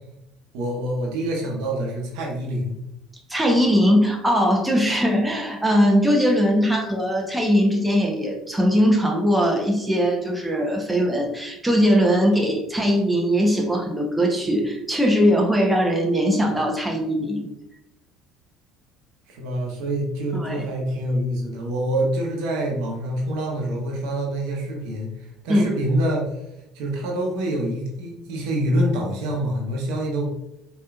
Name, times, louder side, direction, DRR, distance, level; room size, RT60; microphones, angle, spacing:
voice 1, 0.5-2.8 19.3-26.2 26.7-30.3, right 1 dB, 70° right, -1 dB, 0.9 m, -26 dB
voice 2, 3.3-17.5 20.3-20.7 25.5-25.7, equal, 10° right, 0 dB, 0.9 m, -20 dB
4.5 x 3.0 x 2.4 m, 0.88 s
hypercardioid pair, 65°, 0 cm